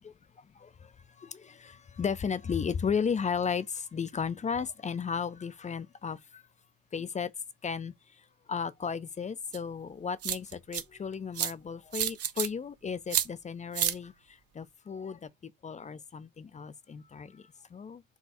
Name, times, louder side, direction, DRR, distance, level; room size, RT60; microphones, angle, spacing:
voice 1, 0.6-6.4 6.9-7.3 7.6-18.0, left 6 dB, 20° left, 0.4 m, -35 dB
sound 1, 9.5-9.6 10.2-10.8 11.3-11.5 11.9-12.5 13.1-13.3 13.7-13.9, right 10 dB, 45° right, 0.7 m, -29 dB
4.6 x 2.4 x 4.1 m
hypercardioid pair, 65°, 35 cm